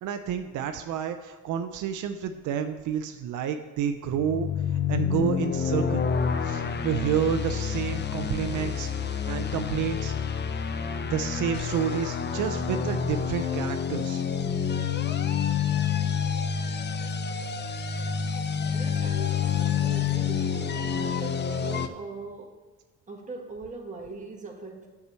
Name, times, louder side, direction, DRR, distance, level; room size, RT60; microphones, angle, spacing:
voice 1, 0.0-4.5 4.9-6.0 6.4-10.1 11.0-14.2, right 8 dB, 80° right, 7 dB, 0.6 m, -30 dB
sound 1, 4.0-21.9, left 7 dB, 35° left, 0.7 m, -28 dB
voice 2, 18.7-22.7 23.1-24.9, right 3 dB, 25° right, 0 dB, 1.7 m, -40 dB
7.9 x 4.8 x 6.8 m, 1.3 s
cardioid pair, 90°, 30 cm